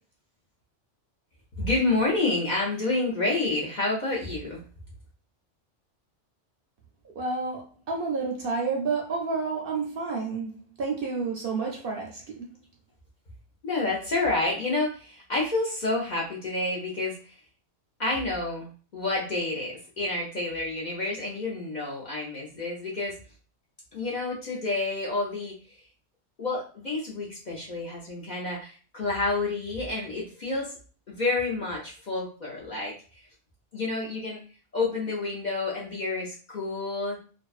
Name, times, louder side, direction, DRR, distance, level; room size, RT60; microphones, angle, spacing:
voice 1, 1.6-4.6 13.6-17.4 18.0-23.2 23.9-25.6 26.4-30.7 31.1-32.9 33.7-34.4 34.7-37.2, left 2 dB, 50° left, -4 dB, 0.6 m, -29 dB
voice 2, 7.2-12.5, right 4 dB, 60° right, 0 dB, 0.7 m, -30 dB
2.5 x 2.1 x 2.3 m, 0.38 s
omnidirectional pair, 1.2 m